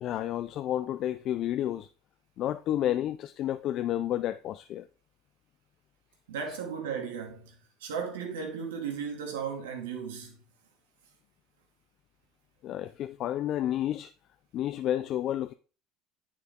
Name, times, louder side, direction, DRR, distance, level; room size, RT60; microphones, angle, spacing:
voice 1, 0.0-1.9 2.4-4.9 12.6-14.1 14.5-15.5, left 12 dB, 55° left, 0.5 m, -30 dB
voice 2, 6.3-7.5 7.8-10.4, right 6 dB, 90° right, 2.6 m, -35 dB
9.9 x 6.6 x 3.8 m
supercardioid pair, 85°, 0 cm